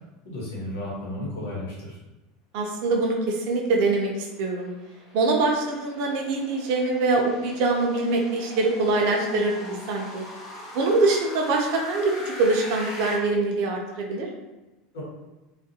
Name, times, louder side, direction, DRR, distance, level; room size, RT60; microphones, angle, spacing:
voice 1, 0.2-2.0 14.9-15.0, left 1 dB, 90° left, -5 dB, 1.1 m, -33 dB
voice 2, 2.5-4.7 5.1-10.2 10.7-12.1 12.4-14.3, right 3 dB, 55° right, 0 dB, 0.5 m, -24 dB
sound 1, 3.6-13.1, left 1 dB, 30° left, 0.6 m, -42 dB
2.4 x 2.2 x 2.7 m, 1.1 s
supercardioid pair, 165°, 0 cm